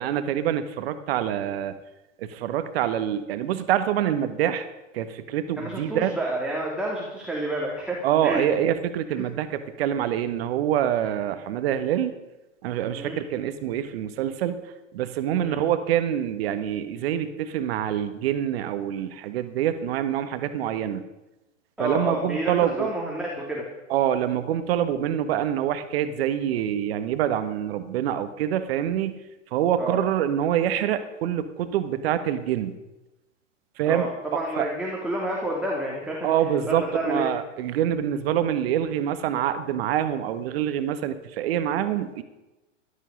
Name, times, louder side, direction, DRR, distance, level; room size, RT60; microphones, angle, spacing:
voice 1, 0.0-1.7 2.2-4.7 4.9-6.1 8.0-12.1 12.6-14.6 14.9-21.0 21.8-22.9 23.9-29.2 29.5-32.7 33.8-34.1 34.6-34.7 36.2-42.2, right 10 dB, 50° right, 10 dB, 1.5 m, -25 dB
voice 2, 5.6-8.4 12.9-13.2 15.4-15.6 21.8-23.7 29.8-30.0 33.9-36.3 36.6-37.2, right 1 dB, ahead, -4 dB, 3.0 m, -29 dB
17.0 x 12.5 x 5.2 m, 1.0 s
figure-of-eight pair, 105°, 38 cm